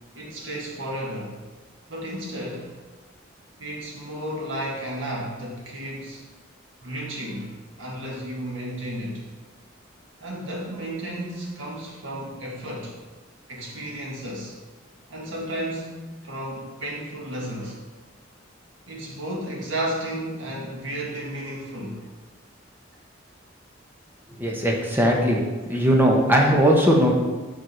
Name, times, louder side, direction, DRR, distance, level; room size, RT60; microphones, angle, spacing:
voice 1, 0.2-1.4 1.9-2.7 3.6-6.2 6.8-9.2 10.2-13.0 13.5-14.5 15.1-17.8 18.9-22.1, right 1 dB, 85° right, -3 dB, 1.8 m, -33 dB
voice 2, 24.4-25.4 25.7-27.1, equal, 10° right, -1 dB, 1.0 m, -19 dB
5.1 x 4.7 x 5.9 m, 1.3 s
head